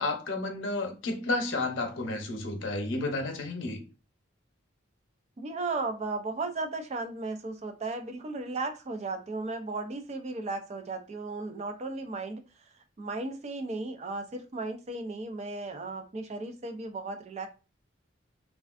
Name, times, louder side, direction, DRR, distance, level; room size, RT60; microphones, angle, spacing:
voice 1, 0.0-3.8, left 2 dB, 75° left, 0.8 m, -31 dB
voice 2, 5.4-12.4 13.0-17.5, right 3 dB, 35° right, 0.4 m, -35 dB
3.2 x 2.4 x 2.4 m
head